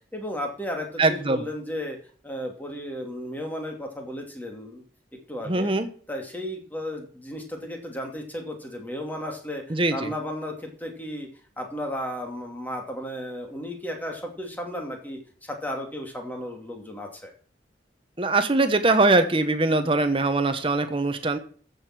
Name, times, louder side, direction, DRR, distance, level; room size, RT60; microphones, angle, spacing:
voice 1, 0.1-2.0 2.2-4.8 5.3-5.7 6.1-11.3 11.6-17.3, left 1 dB, 10° left, 2 dB, 2.6 m, -34 dB
voice 2, 1.0-1.4 5.4-5.9 9.7-10.1 18.2-21.4, right 2 dB, 30° right, 7 dB, 1.1 m, -22 dB
14.5 x 6.7 x 6.0 m, 0.44 s
head